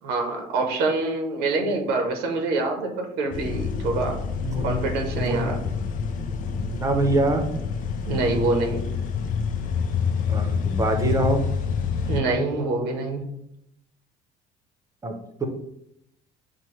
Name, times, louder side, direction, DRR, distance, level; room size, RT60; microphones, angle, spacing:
voice 1, 0.0-4.2 4.6-5.6 8.1-8.9 12.1-13.3, right 3 dB, 80° right, 3 dB, 0.8 m, -25 dB
sound 1, 3.3-12.2, left 6 dB, 55° left, 0.4 m, -27 dB
voice 2, 4.4-4.8 5.2-5.5 6.8-7.4 10.3-11.4 15.0-15.1 15.4-15.5, right 2 dB, 20° right, 5 dB, 0.8 m, -24 dB
5.7 x 2.2 x 3.1 m, 0.78 s
supercardioid pair, 90°, 17 cm